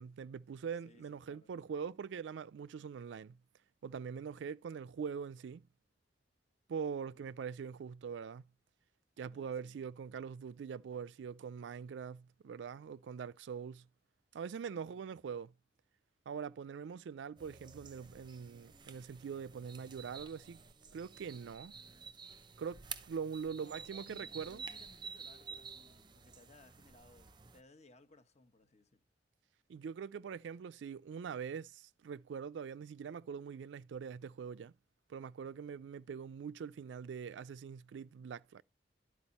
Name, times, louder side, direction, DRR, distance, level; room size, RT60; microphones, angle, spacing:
voice 1, 0.0-3.4 3.8-5.6 6.7-8.4 9.2-13.9 14.3-15.5 16.3-20.6 20.9-21.8 22.6-24.6 29.7-34.7 35.1-38.6, right 6 dB, 80° right, 0.3 m, -43 dB
voice 2, 0.8-1.5 7.3-7.4 9.2-9.7 14.9-15.0 23.5-29.0, left 2 dB, 40° left, 1.1 m, -62 dB
sound 1, 17.4-27.6, right 6 dB, 25° right, 0.6 m, -51 dB
11.5 x 4.8 x 4.1 m
head